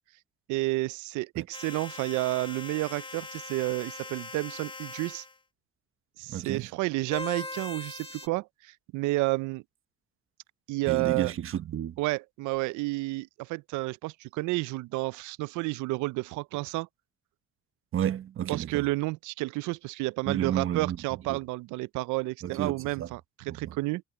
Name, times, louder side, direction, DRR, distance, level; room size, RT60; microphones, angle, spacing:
voice 1, 0.5-5.2 6.2-9.6 10.7-11.3 12.0-16.9 18.5-24.0, right 21 dB, 75° right, 0.5 m, -31 dB
sound 1, 1.5-5.4 7.1-8.3, left 3 dB, 15° left, 3.2 m, -41 dB
voice 2, 6.3-6.7 10.9-12.0 17.9-18.9 20.3-21.0 21.3-21.4 22.4-23.1 23.5-23.7, right 10 dB, 45° right, 1.0 m, -31 dB
cardioid pair, 130°, 30 cm